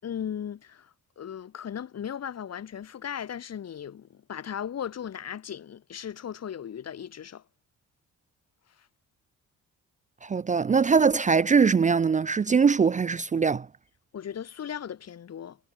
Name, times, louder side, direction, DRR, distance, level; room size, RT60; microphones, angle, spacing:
voice 1, 0.0-7.4 14.1-15.6, left 9 dB, 55° left, 4.4 m, -37 dB
voice 2, 10.2-13.7, right 5 dB, 25° right, 0.5 m, -22 dB
cardioid pair, 90°, 30 cm